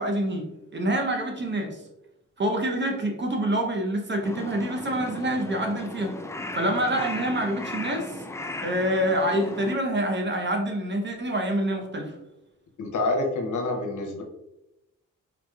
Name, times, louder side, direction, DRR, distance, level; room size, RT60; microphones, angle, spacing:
voice 1, 0.0-1.8 2.4-6.1 6.5-8.1 8.6-12.1, right 1 dB, 35° right, 2 dB, 0.8 m, -26 dB
Crow, 4.2-9.7, left 2 dB, 10° left, 0.3 m, -36 dB
voice 2, 12.8-14.2, left 2 dB, 65° left, 2 dB, 0.8 m, -27 dB
3.7 x 2.9 x 2.3 m, 0.89 s
supercardioid pair, 55°, 33 cm